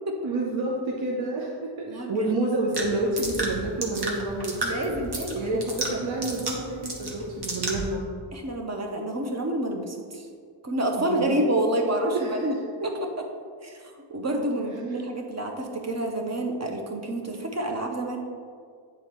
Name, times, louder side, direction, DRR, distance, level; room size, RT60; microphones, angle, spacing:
voice 1, 0.2-5.0 5.3-8.2 10.9-11.4 12.1-12.5, right 2 dB, 70° right, -3 dB, 0.8 m, -29 dB
voice 2, 1.9-2.3 4.6-5.6 5.9-6.0 8.3-10.3 10.6-12.5 13.6-13.8 14.1-18.2, right 1 dB, 30° right, 3 dB, 0.8 m, -28 dB
sound 1, 2.7-7.9, right 2 dB, 50° right, 1.1 m, -33 dB
8.9 x 3.8 x 3.0 m, 2.1 s
wide cardioid pair, 95°, 50 cm